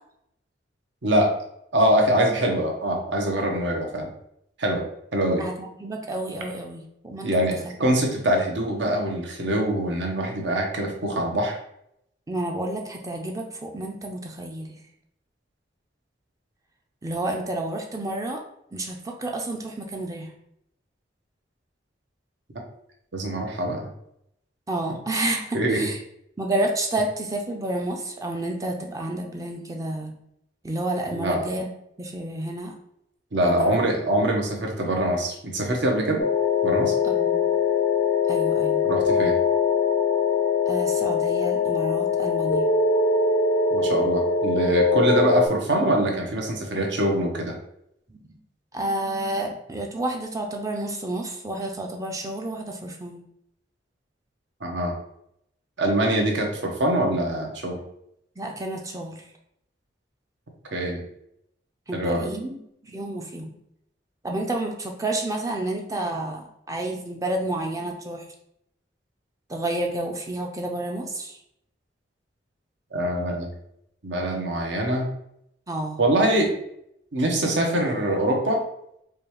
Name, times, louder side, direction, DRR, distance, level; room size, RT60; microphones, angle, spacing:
voice 1, 1.0-1.3 1.7-4.1 4.6-4.8 5.1-5.4 7.2-11.6 23.1-23.9 25.5-25.9 31.1-31.4 33.3-36.2 36.6-36.9 38.8-39.3 43.7-47.6 54.6-54.9 55.8-57.8 60.7-61.0 61.9-62.3 72.9-73.5 74.0-75.1 76.0-76.5 77.1-78.6, right 1 dB, 75° right, 1 dB, 0.9 m, -24 dB
voice 2, 5.4-7.5 12.3-14.8 17.0-18.4 18.7-20.3 24.7-26.0 26.4-30.1 30.6-31.7 32.0-32.8 33.4-33.8 37.0-37.5 38.3-38.8 40.7-42.7 48.1-48.2 48.7-53.3 58.4-59.2 61.9-63.5 64.2-68.3 69.5-71.4 75.7-76.0, right 1 dB, 20° right, 2 dB, 0.4 m, -30 dB
sound 1, 36.2-45.5, left 5 dB, 85° left, 0.6 m, -22 dB
4.8 x 2.3 x 3.0 m, 0.75 s
head